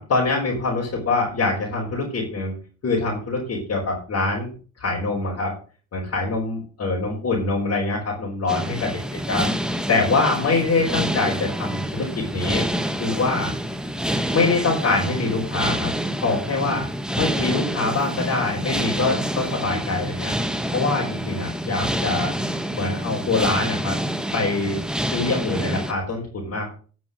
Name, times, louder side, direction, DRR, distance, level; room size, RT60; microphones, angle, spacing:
voice 1, 0.0-2.6 2.8-4.5 4.8-5.5 5.9-9.0 9.3-9.5 9.9-12.6 13.0-13.5 14.3-15.9 16.2-16.9 17.2-20.3 20.7-22.3 22.7-24.0 24.3-24.8 25.1-26.7, left 3 dB, 55° left, -4 dB, 4.0 m, -24 dB
sound 1, 8.5-25.9, equal, 5° right, 1.2 m, -27 dB
11.0 x 6.2 x 6.4 m, 0.39 s
cardioid pair, 90°, 30 cm